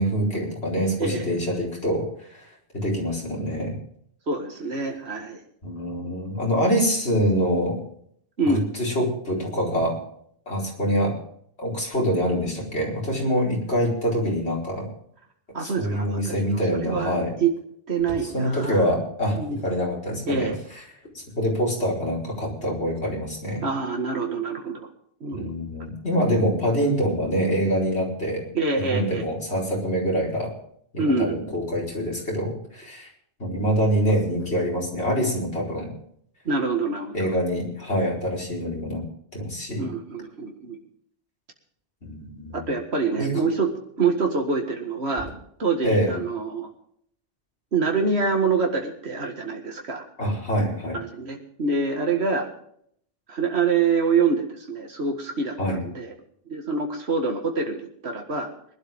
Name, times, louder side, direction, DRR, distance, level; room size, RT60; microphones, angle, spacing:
voice 1, 0.0-2.5 2.7-3.7 5.6-7.8 8.4-10.0 10.5-11.2 11.6-14.9 15.6-17.3 18.2-19.4 19.6-20.5 21.1-23.6 25.3-28.4 28.7-30.5 30.9-33.1 33.4-35.9 37.1-39.0 39.3-39.9 42.0-42.7 43.2-43.4 45.8-46.1 50.2-51.0 55.6-55.8, equal, 85° left, -3 dB, 4.9 m, -25 dB
voice 2, 4.3-5.4 8.4-8.6 15.5-17.1 17.4-17.5 17.9-18.9 19.3-19.6 20.3-20.5 23.6-24.9 25.2-25.5 28.5-29.3 31.0-31.4 36.5-37.3 39.8-40.8 42.5-43.7 44.0-45.3 45.6-46.7 47.7-50.0 50.9-52.5 53.3-56.1 56.5-58.5, right 4 dB, 80° right, 3 dB, 2.1 m, -26 dB
21.5 x 12.0 x 3.6 m, 0.67 s
omnidirectional pair, 1.1 m